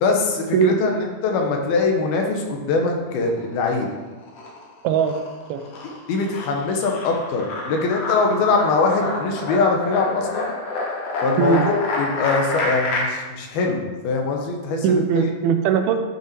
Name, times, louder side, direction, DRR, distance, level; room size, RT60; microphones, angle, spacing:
voice 1, 0.0-3.9 6.1-10.5 11.2-15.3, left 3 dB, 80° left, 2 dB, 3.1 m, -22 dB
sound 1, 3.1-3.9 4.2-13.0, left 2 dB, 60° left, 2.8 m, -28 dB
voice 2, 4.8-5.1 5.5-5.7 11.4-11.6 14.8-16.0, right 7 dB, 85° right, 7 dB, 2.6 m, -19 dB
11.5 x 5.7 x 4.6 m, 1.2 s
omnidirectional pair, 4.3 m